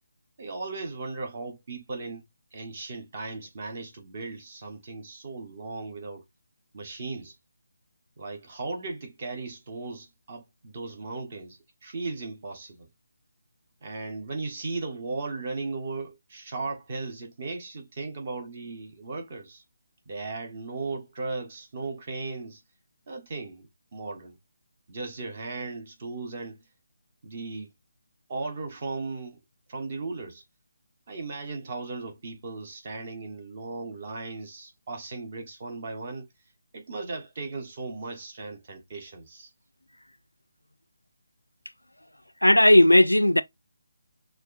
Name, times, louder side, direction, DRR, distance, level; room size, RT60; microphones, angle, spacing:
voice 1, 0.4-2.2 2.5-6.2 6.7-7.3 8.2-12.9 13.8-19.6 20.1-22.6 23.1-24.4 24.9-26.6 27.2-27.7 28.3-29.4 29.7-30.4 31.1-36.3 36.7-39.5, right 3 dB, 35° right, 1.2 m, -36 dB
voice 2, 42.4-43.4, left 1 dB, 85° left, 0.3 m, -16 dB
6.3 x 2.4 x 2.5 m
figure-of-eight pair, 150°, 0 cm